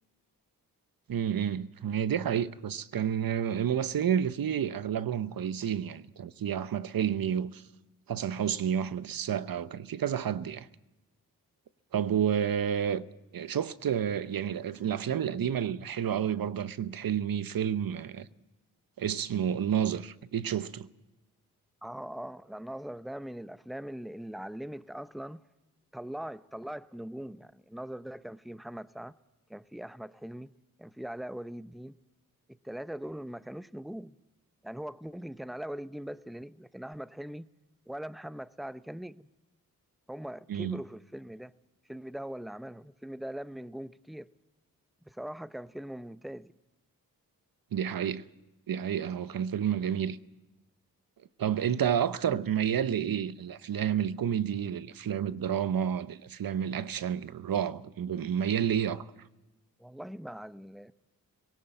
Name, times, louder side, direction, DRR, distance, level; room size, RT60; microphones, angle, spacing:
voice 1, 1.1-7.6 8.1-10.7 11.9-13.0 13.3-18.3 19.0-20.9 40.5-40.8 47.7-48.2 48.7-50.2 51.4-59.1, right 9 dB, 65° right, 0.8 m, -30 dB
voice 2, 21.8-25.4 25.9-29.1 29.5-30.5 30.8-32.0 32.5-34.2 34.6-37.5 37.9-39.3 40.1-41.5 41.9-44.3 45.0-46.5 59.8-60.9, right 1 dB, ahead, 0.7 m, -41 dB
19.5 x 17.5 x 8.9 m
cardioid pair, 40°, 37 cm